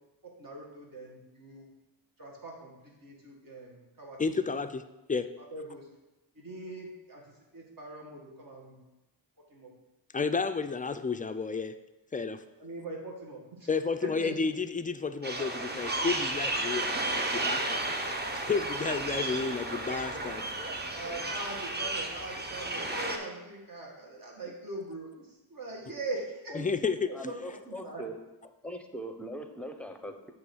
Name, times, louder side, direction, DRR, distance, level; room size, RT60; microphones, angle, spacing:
voice 1, 0.2-1.7 2.2-4.4 5.5-5.9 6.4-8.8 9.4-9.7 12.6-13.7 14.0-14.4 20.8-26.6 27.1-28.0, right 2 dB, 50° right, -1 dB, 2.0 m, -42 dB
voice 2, 4.2-4.8 5.1-5.3 10.1-11.7 12.1-12.4 13.7-17.8 18.3-20.4 26.5-27.1, left 4 dB, 20° left, 10 dB, 0.4 m, -31 dB
sound 1, 15.2-23.2, right 2 dB, 25° right, 0.9 m, -33 dB
voice 3, 27.1-28.2 28.6-30.3, equal, 5° left, 6 dB, 0.8 m, -40 dB
7.7 x 3.1 x 6.1 m, 1.0 s
cardioid pair, 60°, 43 cm